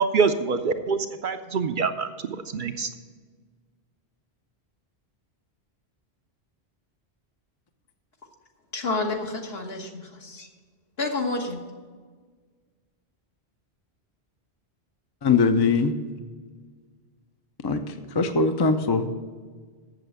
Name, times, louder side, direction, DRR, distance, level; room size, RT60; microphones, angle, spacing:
voice 1, 0.0-2.9, right 5 dB, 60° right, 8 dB, 0.6 m, -25 dB
voice 2, 8.7-10.5 11.0-11.6, left 3 dB, 70° left, 2 dB, 1.6 m, -29 dB
voice 3, 15.2-16.0 17.6-19.1, left 4 dB, 30° left, 7 dB, 0.5 m, -22 dB
7.7 x 7.2 x 7.8 m, 1.5 s
omnidirectional pair, 1.1 m